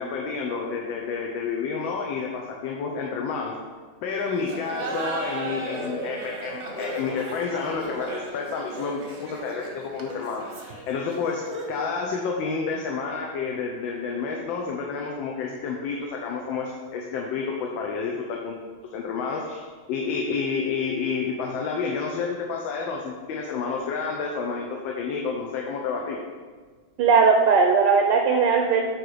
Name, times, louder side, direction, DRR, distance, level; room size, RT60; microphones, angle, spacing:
voice 1, 0.0-3.5 4.0-11.4 11.7-18.6 18.9-26.2, left 5 dB, 75° left, 0 dB, 1.4 m, -30 dB
Laughter, 4.4-11.9, right 2 dB, 50° right, 0.9 m, -35 dB
voice 2, 27.0-28.9, right 5 dB, 70° right, 2 dB, 1.1 m, -18 dB
8.8 x 3.1 x 4.9 m, 1.5 s
omnidirectional pair, 2.2 m